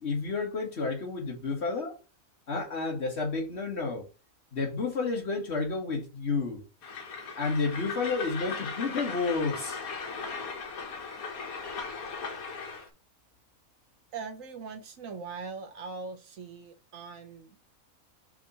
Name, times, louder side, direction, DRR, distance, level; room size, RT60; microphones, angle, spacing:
voice 1, 0.0-2.0 2.5-4.1 4.5-6.6 7.4-9.8, left 4 dB, 50° left, 1.9 m, -31 dB
Train, 6.8-12.9, left 5 dB, 75° left, 1.6 m, -38 dB
voice 2, 14.1-17.6, right 4 dB, 65° right, 1.2 m, -41 dB
4.8 x 3.7 x 5.5 m
omnidirectional pair, 1.5 m